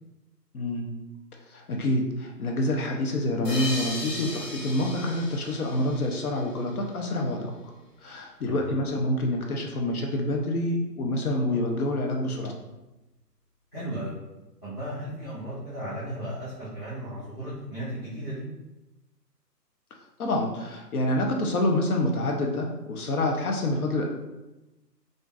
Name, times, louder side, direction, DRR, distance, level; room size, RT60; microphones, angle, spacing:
voice 1, 0.5-0.9 1.5-7.5 8.0-12.5 20.2-24.0, left 1 dB, 60° left, 1 dB, 0.6 m, -27 dB
sound 1, 3.4-6.8, left 2 dB, 80° left, 1.5 m, -37 dB
voice 2, 13.7-14.2 14.6-18.4, right 1 dB, 10° left, -13 dB, 0.6 m, -35 dB
3.5 x 2.5 x 2.4 m, 1.0 s
hypercardioid pair, 150°, 49 cm